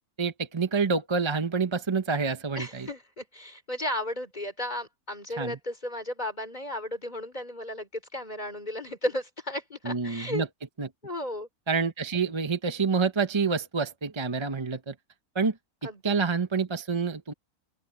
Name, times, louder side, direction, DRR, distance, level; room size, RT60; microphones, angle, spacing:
voice 1, 0.2-2.9 5.4-5.6 9.8-10.5 10.8-10.9 11.7-14.9 15.3-15.5 16.0-17.3, right 5 dB, 25° right, 0.7 m, -27 dB
voice 2, 2.6-10.4 11.0-11.5 15.8-16.0, left 1 dB, 25° left, 3.4 m, -34 dB
open air
omnidirectional pair, 1.6 m